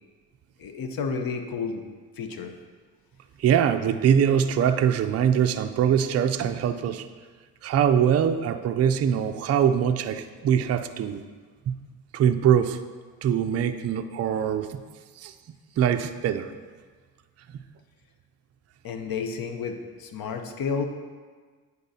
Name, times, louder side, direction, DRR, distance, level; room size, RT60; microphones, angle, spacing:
voice 1, 0.6-1.8 2.2-2.5 18.8-20.9, left 5 dB, 55° left, 6 dB, 0.8 m, -31 dB
voice 2, 3.4-7.1 7.6-11.2 11.7-11.8 12.1-12.8 13.2-14.8 15.2-15.3 15.8-16.5 17.5-17.6, right 8 dB, 40° right, 8 dB, 0.4 m, -23 dB
9.8 x 4.0 x 2.8 m, 1.5 s
supercardioid pair, 65°, 42 cm